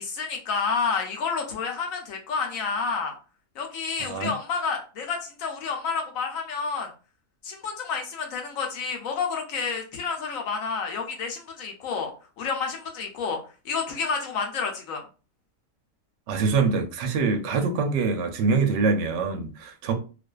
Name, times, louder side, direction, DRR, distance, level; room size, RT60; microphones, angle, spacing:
voice 1, 0.0-3.1 3.6-6.9 7.4-12.1 12.4-13.4 13.6-15.0, left 5 dB, 70° left, 1.0 m, -29 dB
voice 2, 4.0-4.3 16.3-19.9, right 4 dB, 65° right, 0.7 m, -24 dB
2.5 x 2.3 x 2.2 m
omnidirectional pair, 1.5 m